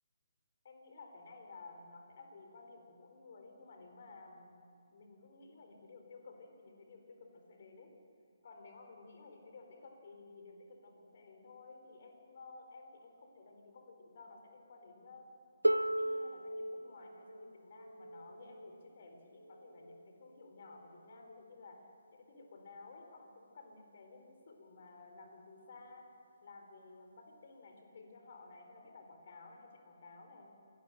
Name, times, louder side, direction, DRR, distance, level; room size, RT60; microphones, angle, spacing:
voice 1, 0.6-4.7 4.9-7.9 8.4-15.3 15.7-21.8 22.1-26.1 26.4-30.6, left 3 dB, 45° left, 3 dB, 4.1 m, -55 dB
Harp, 15.6-21.4 22.5-22.6, right 1 dB, 85° right, 0.6 m, -38 dB
26.0 x 18.0 x 6.8 m, 2.5 s
figure-of-eight pair, 140°, 0 cm